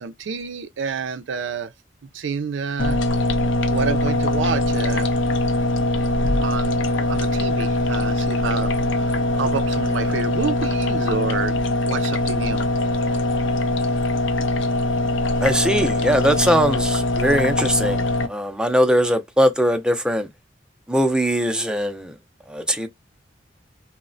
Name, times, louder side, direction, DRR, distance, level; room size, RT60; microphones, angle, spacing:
voice 1, 0.0-1.7 2.1-3.0 3.7-5.1 6.4-6.8 7.1-8.7 9.0-11.5 11.8-12.6, right 6 dB, 85° right, 0.4 m, -28 dB
sound 1, 2.8-18.3, left 2 dB, 80° left, 0.5 m, -22 dB
voice 2, 15.4-20.3 20.9-22.1 22.5-22.9, equal, 5° right, 0.4 m, -20 dB
3.0 x 2.1 x 2.5 m
head